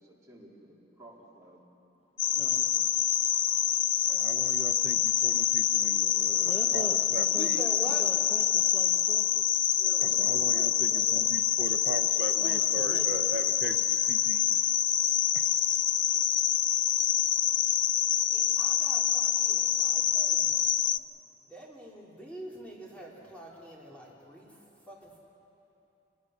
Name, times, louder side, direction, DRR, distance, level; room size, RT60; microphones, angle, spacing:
voice 1, 0.0-1.6 9.7-11.2, right 1 dB, 15° right, -5 dB, 3.7 m, -49 dB
sound 1, 2.2-21.0, left 11 dB, 85° left, 0.5 m, -26 dB
voice 2, 2.2-3.0 6.4-7.5 7.8-9.4 12.4-13.8, equal, 30° left, 2 dB, 1.2 m, -43 dB
voice 3, 4.1-7.6 10.0-14.6 15.3-15.5, right 2 dB, 55° right, 7 dB, 0.7 m, -39 dB
voice 4, 7.3-8.0 18.3-20.6 21.5-24.5 24.9-25.2, equal, 5° left, -4 dB, 3.4 m, -44 dB
27.5 x 19.5 x 6.5 m, 2.9 s
head